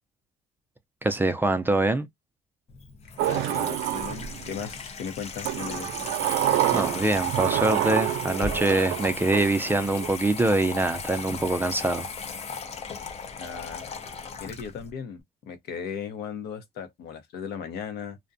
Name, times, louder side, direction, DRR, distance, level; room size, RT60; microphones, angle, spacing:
voice 1, 1.0-2.1 6.7-12.1, right 2 dB, 10° right, 0.4 m, -24 dB
Water tap faucet / Sink (filling or washing), 2.7-14.9, left 5 dB, 40° left, 0.6 m, -37 dB
voice 2, 3.2-5.9 13.4-13.8 14.4-18.2, left 7 dB, 75° left, 0.7 m, -37 dB
Sliding door, 3.2-4.7 5.4-10.1, right 13 dB, 85° right, 0.4 m, -28 dB
2.5 x 2.1 x 2.5 m
cardioid pair, 110°, 17 cm